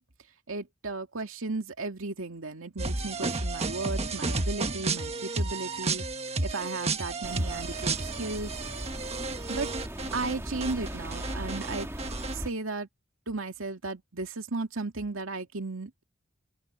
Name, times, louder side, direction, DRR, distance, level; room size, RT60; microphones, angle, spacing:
voice 1, 0.5-6.1 6.4-8.5 9.5-9.7 10.1-11.9 12.3-12.9 13.3-16.0, right 3 dB, 85° right, 2.3 m, -35 dB
sound 1, 2.8-10.3 10.6-12.3, right 3 dB, 30° right, 1.5 m, -32 dB
sound 2, 7.2-12.5, equal, 15° right, 1.8 m, -38 dB
open air
head